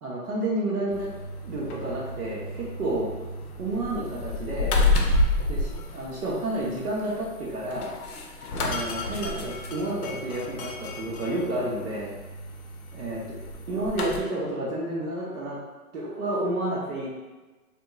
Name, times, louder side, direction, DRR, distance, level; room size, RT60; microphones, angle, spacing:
voice 1, 0.0-1.1 1.4-3.1 3.6-4.8 5.5-7.9 8.6-12.1 12.9-13.2 13.7-15.6 15.9-17.1, right 1 dB, 65° right, -6 dB, 0.9 m, -30 dB
sound 1, 0.9-14.2, left 2 dB, 70° left, 0.6 m, -30 dB
2.8 x 2.6 x 2.3 m, 1.2 s
hypercardioid pair, 125°, 46 cm